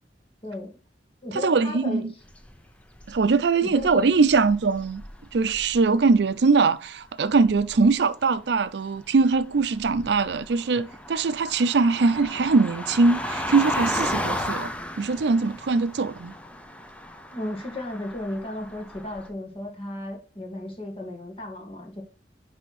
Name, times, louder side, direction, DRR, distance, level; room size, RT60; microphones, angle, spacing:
voice 1, 0.4-0.7 1.2-2.1 3.6-4.1 17.3-22.0, left 1 dB, 30° left, 1.8 m, -34 dB
voice 2, 1.3-2.1 3.1-5.0 5.3-14.7 15.0-16.3, right 4 dB, 65° right, 0.5 m, -22 dB
sound 1, 2.3-3.4 3.8-5.9 7.3-7.9 9.2-19.3, left 1 dB, 5° left, 0.6 m, -34 dB
10.0 x 3.5 x 4.1 m
head